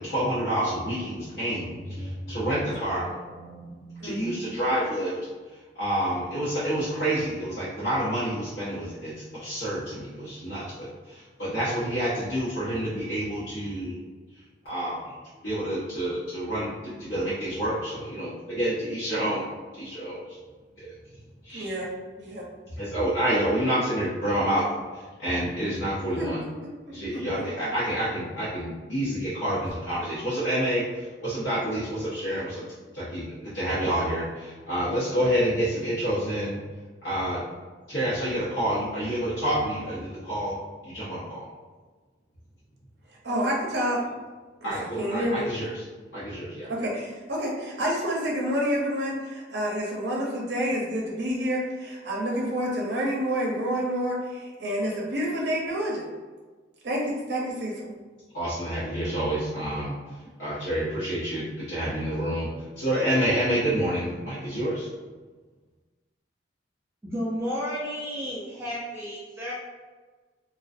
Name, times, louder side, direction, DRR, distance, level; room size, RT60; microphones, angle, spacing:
voice 1, 0.0-5.1 5.7-14.0 14.6-15.0 15.4-19.4 19.8-20.2 20.8-20.9 21.4-21.7 22.8-24.6 24.9-26.4 26.9-30.8 31.2-32.6 32.9-36.6 37.0-37.4 37.9-40.6 40.8-41.4 44.6-45.8 46.1-46.7 58.3-59.9 60.4-62.5 62.7-64.9, right 1 dB, 65° left, -12 dB, 0.8 m, -28 dB
voice 2, 21.5-21.9 22.2-22.4 26.2-26.3 27.1-27.2 43.2-44.0 44.6-45.5 46.7-56.1 56.8-57.9, equal, 65° right, -2 dB, 0.5 m, -28 dB
voice 3, 67.0-69.5, equal, 15° right, -8 dB, 0.3 m, -32 dB
2.3 x 2.2 x 2.5 m, 1.3 s
head